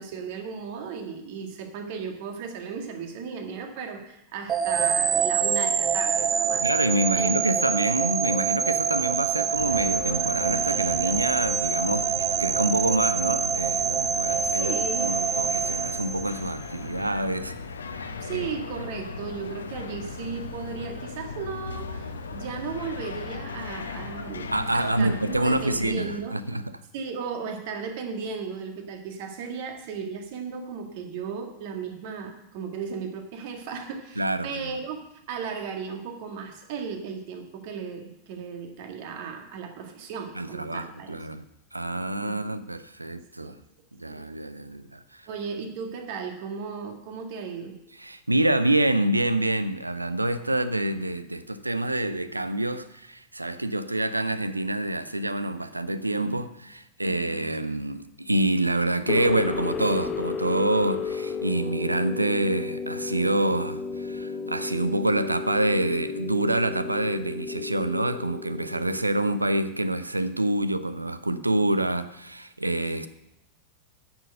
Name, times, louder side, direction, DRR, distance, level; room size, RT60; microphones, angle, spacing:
voice 1, 0.0-6.7 7.1-7.5 14.4-15.2 18.2-26.4 26.9-35.0 35.3-41.2 42.0-42.6 43.4-43.5 44.1-44.2 45.3-47.8 57.0-57.5, right 5 dB, 50° right, 1.7 m, -36 dB
sound 1, 4.5-16.6, right 7 dB, 25° right, 0.6 m, -26 dB
voice 2, 6.6-17.6 18.3-18.5 18.8-18.9 24.5-26.6 34.2-34.5 40.4-41.4 41.7-43.6 44.0-45.2 48.0-73.1, right 1 dB, 85° right, 0.6 m, -27 dB
sound 2, 9.5-26.0, left 4 dB, 70° left, 0.8 m, -37 dB
sound 3, 59.1-70.0, left 5 dB, 25° left, 1.0 m, -33 dB
9.9 x 7.0 x 6.6 m
figure-of-eight pair, 90°, 0 cm